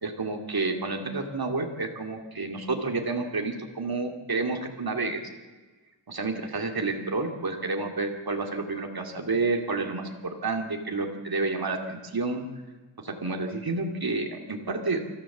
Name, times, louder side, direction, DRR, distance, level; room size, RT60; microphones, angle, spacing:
voice 1, 0.0-5.2 6.1-12.5 13.0-15.1, right 3 dB, 50° right, 3 dB, 2.7 m, -30 dB
24.5 x 14.5 x 7.4 m, 1.2 s
wide cardioid pair, 60°, 46 cm